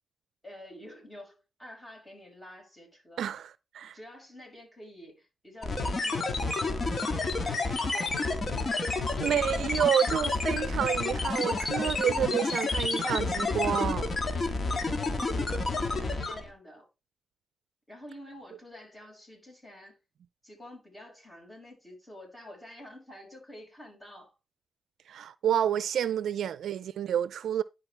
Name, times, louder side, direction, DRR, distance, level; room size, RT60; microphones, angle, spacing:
voice 1, 0.4-3.4 3.8-6.9 7.3-8.8 12.1-12.6 14.4-16.9 17.9-20.0 20.4-24.3 26.3-26.4, left 1 dB, 15° left, 5.5 m, -48 dB
voice 2, 3.2-4.0 9.2-14.1 25.1-27.6, right 9 dB, 85° right, 0.4 m, -29 dB
sound 1, 5.6-16.5, left 3 dB, 50° left, 1.9 m, -30 dB
11.0 x 4.8 x 3.4 m
cardioid pair, 65°, 0 cm